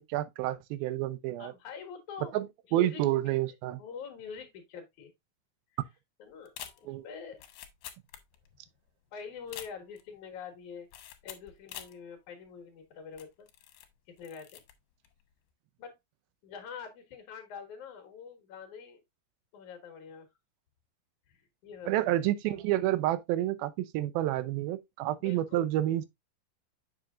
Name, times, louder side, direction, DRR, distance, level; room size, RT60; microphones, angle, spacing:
voice 1, 0.0-1.5 2.3-2.5 2.7-3.8 6.9-7.1 21.9-26.1, right 14 dB, 80° right, 2.4 m, -29 dB
voice 2, 1.4-2.3 2.7-3.0 3.8-5.1 6.2-6.5 6.8-7.4 9.1-10.9 11.2-13.3 14.2-14.6 15.8-15.9 16.4-19.0 19.5-20.3 21.3-22.2 25.2-25.6, left 6 dB, 60° left, 2.7 m, -45 dB
sound 1, 6.5-8.6 8.9-9.0 9.4-10.1 10.9-12.0 12.5-12.6 13.1-13.9 14.2-14.7 15.0-15.3, left 11 dB, 80° left, 2.8 m, -47 dB
7.4 x 6.5 x 2.4 m
omnidirectional pair, 4.4 m